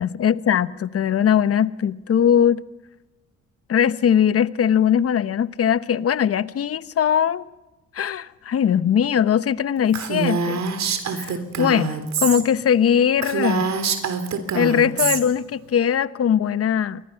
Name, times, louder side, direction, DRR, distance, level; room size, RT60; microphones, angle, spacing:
voice 1, 0.0-2.6 3.7-7.4 7.9-10.6 11.1-13.7 14.5-17.0, left 8 dB, 50° left, 1.0 m, -20 dB
Female speech woman speaking, 9.9-12.4 12.8-12.9 13.2-15.2, right 5 dB, 65° right, 3.7 m, -25 dB
28.5 x 24.0 x 5.8 m
cardioid pair, 90°, 30 cm